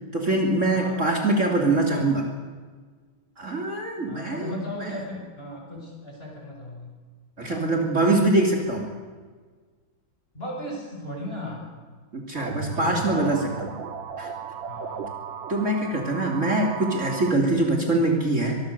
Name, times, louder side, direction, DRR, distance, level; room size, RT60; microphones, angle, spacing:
voice 1, 0.1-2.3 3.4-5.0 7.4-8.9 12.1-13.7 14.2-14.3 15.5-18.6, right 2 dB, 35° right, 2 dB, 3.1 m, -23 dB
voice 2, 4.1-7.0 7.4-7.7 10.3-11.7 12.7-13.3 14.7-15.2, left 1 dB, 30° left, -1 dB, 7.6 m, -36 dB
sound 1, 12.3-17.3, right 6 dB, 70° right, 2.2 m, -35 dB
24.5 x 21.5 x 6.8 m, 1.5 s
omnidirectional pair, 2.2 m